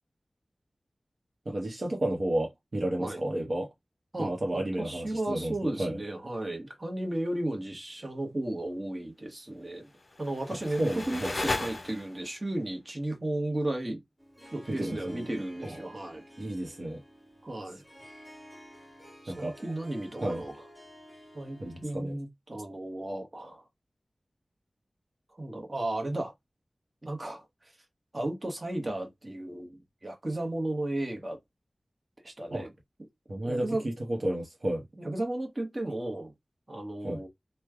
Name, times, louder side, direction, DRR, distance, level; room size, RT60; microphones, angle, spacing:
voice 1, 1.5-3.7 4.2-6.0 10.5-11.3 14.7-15.3 15.6-15.8 16.4-17.0 19.3-19.6 20.2-20.4 21.6-22.2 32.5-32.7 33.3-34.9 37.0-37.2, right 1 dB, 55° right, 0.9 m, -32 dB
voice 2, 4.1-9.9 10.2-14.0 14.5-16.2 17.4-17.8 19.2-20.5 21.3-23.7 25.4-26.3 27.0-27.5 28.1-31.4 32.2-32.7 33.4-33.9 35.0-36.3 36.7-37.3, right 1 dB, 35° right, 1.1 m, -34 dB
sound 1, 10.0-12.4, left 2 dB, 45° left, 0.4 m, -35 dB
Harp, 14.2-22.1, equal, ahead, 1.4 m, -52 dB
3.1 x 2.2 x 3.5 m
wide cardioid pair, 70°, 0 cm